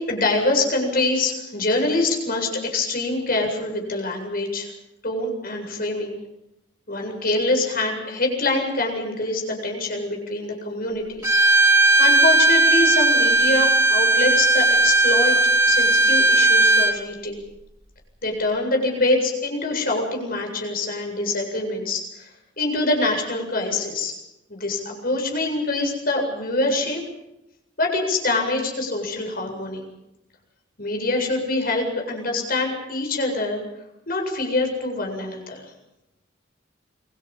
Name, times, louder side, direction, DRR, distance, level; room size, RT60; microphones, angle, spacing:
voice 1, 0.0-4.7 5.0-6.1 6.9-11.4 11.7-15.4 15.7-17.4 18.2-22.3 22.6-24.1 24.5-27.0 27.8-29.8 30.8-33.6 34.1-35.6, left 2 dB, 50° left, 2 dB, 7.9 m, -25 dB
Bowed string instrument, 11.2-17.0, right 2 dB, 15° right, 2.6 m, -17 dB
29.0 x 24.5 x 5.6 m, 0.89 s
head